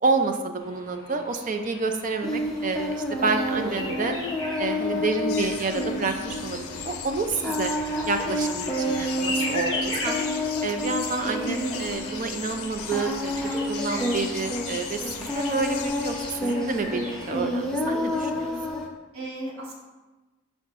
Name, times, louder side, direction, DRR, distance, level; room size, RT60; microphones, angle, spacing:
voice 1, 0.0-4.1 4.6-7.7 8.1-10.2 10.6-16.1 16.4-18.8, right 4 dB, 40° right, 6 dB, 0.5 m, -29 dB
sound 1, 0.6-17.4, left 2 dB, 25° left, 1.9 m, -39 dB
Singing, 2.2-18.9, left 1 dB, 5° left, 0.7 m, -29 dB
voice 2, 3.5-4.0 4.8-5.0 11.4-11.8 19.1-19.7, right 1 dB, 70° right, -4 dB, 1.4 m, -35 dB
sound 2, 5.3-16.4, left 9 dB, 90° left, 0.5 m, -39 dB
10.0 x 3.7 x 2.5 m, 1.2 s
head